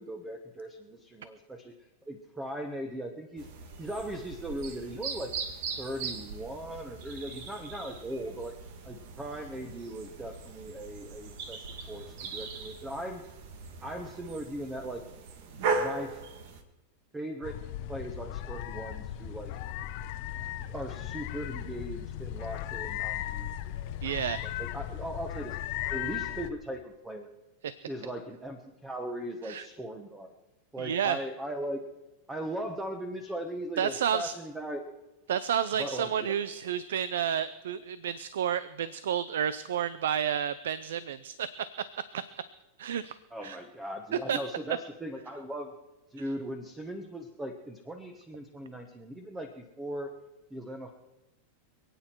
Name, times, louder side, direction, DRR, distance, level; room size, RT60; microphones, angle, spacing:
voice 1, 0.0-3.5 3.8-5.3 5.8-8.5 8.8-13.2 13.8-15.0 15.8-16.2 17.1-17.6 17.9-19.5 20.7-23.5 24.4-27.3 27.9-30.3 30.7-31.8 32.3-34.9 35.8-36.4 43.3-45.7 46.1-50.1 50.5-50.9, right 1 dB, 10° right, 5 dB, 1.3 m, -38 dB
sound 1, 3.4-16.6, right 4 dB, 65° right, 1.9 m, -39 dB
sound 2, 17.4-26.5, left 12 dB, 60° left, 0.9 m, -37 dB
voice 2, 24.0-24.4 29.4-29.7 30.8-31.2 33.8-34.3 35.3-41.5 42.1-42.2 42.8-43.2 43.4-43.6 44.3-44.4, right 9 dB, 85° right, 16 dB, 0.6 m, -30 dB
26.5 x 9.1 x 4.6 m, 1.1 s
supercardioid pair, 125°, 0 cm